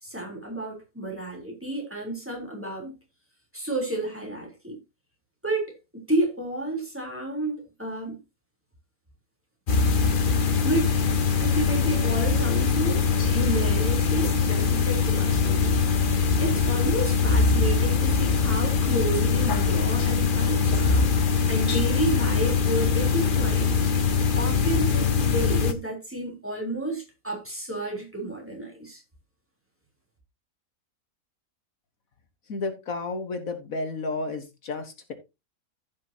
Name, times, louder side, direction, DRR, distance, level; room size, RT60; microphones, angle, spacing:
voice 1, 0.0-2.9 3.5-4.8 5.4-8.2 10.6-10.9 11.4-15.8 16.4-23.8 24.3-29.0, right 1 dB, 10° right, 3.7 m, -31 dB
sound 1, 9.7-25.7, left 5 dB, 40° left, 0.9 m, -22 dB
voice 2, 32.5-35.1, left 3 dB, 65° left, 1.8 m, -32 dB
15.0 x 6.0 x 2.9 m
omnidirectional pair, 1.5 m